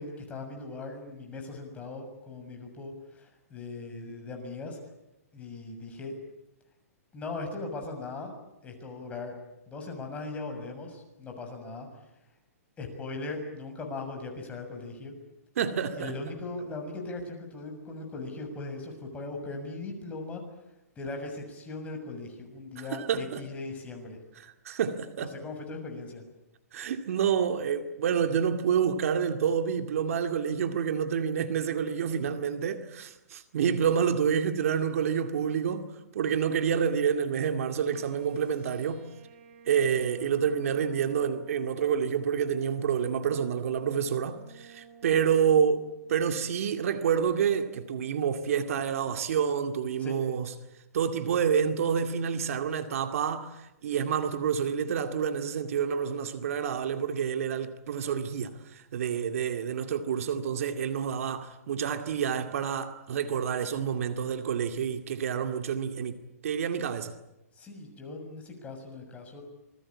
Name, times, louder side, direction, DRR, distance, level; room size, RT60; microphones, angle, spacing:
voice 1, 0.0-4.8 5.3-6.2 7.1-8.3 8.6-9.3 9.7-11.9 12.8-15.1 15.9-20.4 21.0-24.2 25.2-26.2 50.0-50.2 67.5-69.4, left 3 dB, 15° left, 6.8 m, -39 dB
voice 2, 15.6-16.1 22.9-23.4 24.6-25.3 26.7-39.0 39.7-50.5 50.9-67.1, right 7 dB, 60° right, 2.2 m, -28 dB
sound 1, 37.9-45.9, right 5 dB, 45° right, 4.4 m, -53 dB
27.5 x 21.0 x 8.6 m
hypercardioid pair, 140°, 9 cm